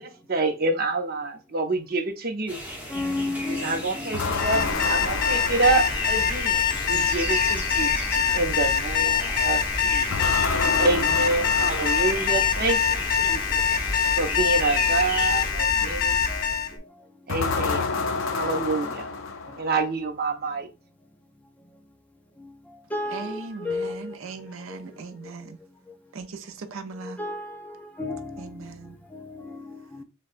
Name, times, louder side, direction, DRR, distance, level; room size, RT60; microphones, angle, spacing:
voice 1, 0.0-2.6 3.6-6.6 6.9-8.0 8.3-10.3 10.8-13.6 14.2-16.2 16.5-16.6 17.3-17.9 18.3-19.1 19.6-20.7, right 3 dB, 50° right, 0.6 m, -27 dB
sound 1, 2.5-15.5, equal, 10° right, 1.0 m, -35 dB
voice 2, 2.9-5.0 7.4-7.5 9.0-9.4 10.6-11.3 11.6-11.8 12.3-12.7 15.8-15.9 16.3-16.6 22.4-22.5 22.9-24.2 24.7-24.8 27.0-28.5 29.1-30.0, left 2 dB, 10° left, 0.4 m, -34 dB
sound 2, 4.1-6.5 10.1-12.6 17.3-19.9, left 4 dB, 75° left, 0.5 m, -30 dB
Alarm, 4.2-16.7, left 7 dB, 45° left, 0.7 m, -24 dB
voice 3, 23.1-25.6 26.1-27.2 28.4-29.0, right 4 dB, 85° right, 0.5 m, -38 dB
6.5 x 2.2 x 2.5 m
head